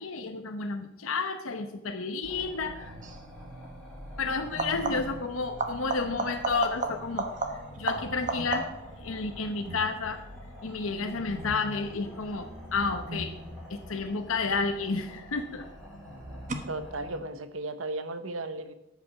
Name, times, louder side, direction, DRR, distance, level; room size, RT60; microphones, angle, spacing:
voice 1, 0.0-3.0 4.2-8.7 9.0-10.2 10.6-13.3 13.7-15.6, left 4 dB, 90° left, 6 dB, 0.9 m, -31 dB
sound 1, 2.2-17.2, equal, ahead, 4.9 m, -46 dB
sound 2, 2.8-3.5 4.3-7.1 7.7-13.9 14.2-14.3 16.1-16.5, equal, 55° right, 1.4 m, -45 dB
sound 3, 3.0-3.3 4.4-5.3 5.6-9.0 14.4-15.0 16.5-16.6, right 3 dB, 40° right, 1.2 m, -33 dB
voice 2, 16.7-18.7, right 2 dB, 80° right, 10 dB, 1.1 m, -35 dB
13.5 x 6.0 x 7.1 m, 0.91 s
head